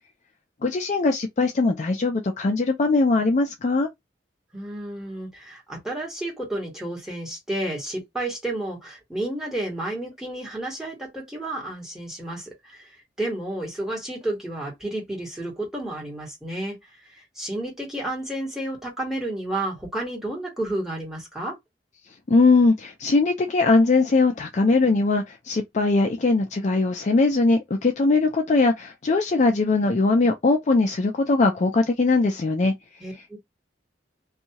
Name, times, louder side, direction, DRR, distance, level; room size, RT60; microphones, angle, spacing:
voice 1, 0.6-3.9 22.3-32.7, left 3 dB, 40° left, 0.4 m, -20 dB
voice 2, 4.5-12.9 13.2-16.8 17.4-21.6 33.0-33.4, right 1 dB, 5° right, 1.5 m, -31 dB
2.7 x 2.3 x 2.8 m
head